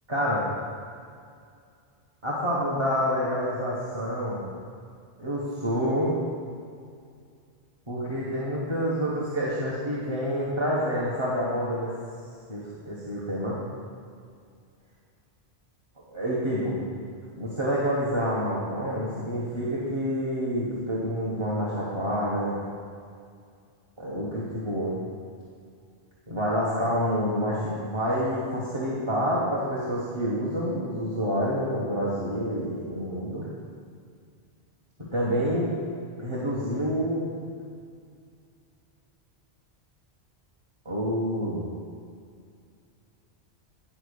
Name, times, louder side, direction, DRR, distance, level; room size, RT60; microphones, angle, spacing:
voice 1, 0.1-0.4 2.2-4.5 5.2-6.1 7.9-11.9 12.5-13.6 16.0-16.9 17.4-22.6 24.0-25.0 26.3-33.5 35.0-35.7 36.2-37.3 40.8-41.7, equal, 25° right, -7 dB, 1.4 m, -28 dB
10.5 x 4.3 x 6.7 m, 2.3 s
omnidirectional pair, 1.1 m